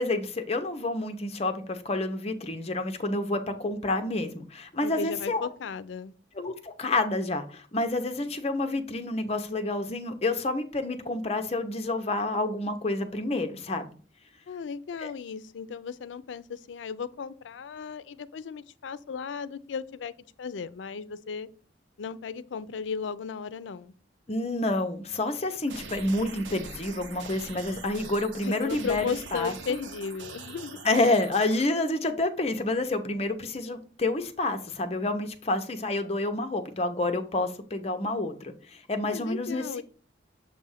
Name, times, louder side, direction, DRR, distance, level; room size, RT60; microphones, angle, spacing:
voice 1, 0.0-5.5 6.3-13.9 15.0-15.1 24.3-29.5 30.8-39.8, left 2 dB, 35° left, 0.7 m, -29 dB
voice 2, 4.8-6.1 14.5-20.1 20.4-21.5 22.0-23.9 28.4-30.8 39.1-39.8, left 6 dB, 85° left, 0.4 m, -35 dB
sound 1, 25.7-31.7, right 4 dB, 85° right, 0.8 m, -43 dB
7.1 x 2.5 x 5.6 m
head